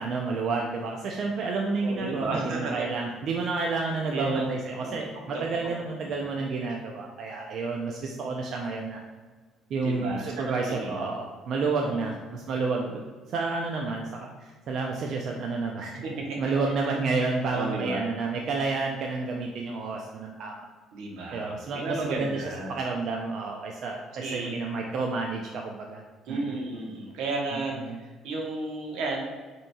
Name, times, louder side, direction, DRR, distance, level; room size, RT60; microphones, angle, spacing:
voice 1, 0.0-9.0 9.7-13.0 13.3-15.9 16.4-20.6 21.3-22.4 22.7-26.0 26.3-26.6 27.9-28.0, right 3 dB, 55° right, 0 dB, 0.4 m, -30 dB
voice 2, 1.8-2.9 4.1-4.5 4.8-4.9 5.3-5.4 6.0-6.2 9.8-11.0 11.8-12.1 16.0-16.4 16.8-16.9 17.5-18.0 20.9-22.8 24.2-24.6 26.3-29.3, right 2 dB, 80° right, 0 dB, 0.9 m, -33 dB
5.3 x 2.9 x 2.3 m, 1.4 s
cardioid pair, 120°, 0 cm